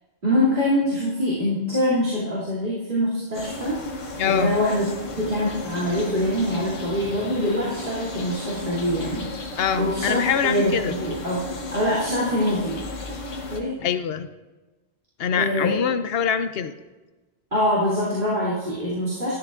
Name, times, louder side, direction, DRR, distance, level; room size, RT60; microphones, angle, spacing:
voice 1, 0.2-3.8 4.2-4.9 5.2-9.3 9.8-12.8 13.5-13.9 15.3-15.8 17.5-19.3, equal, 50° right, -8 dB, 2.9 m, -24 dB
sound 1, 3.3-13.6, left 2 dB, 80° left, 1.4 m, -34 dB
voice 2, 4.2-4.6 9.6-10.9 13.8-14.3 15.2-16.7, left 7 dB, 65° left, 11 dB, 0.8 m, -24 dB
13.0 x 11.5 x 2.5 m, 1.2 s
omnidirectional pair, 1.1 m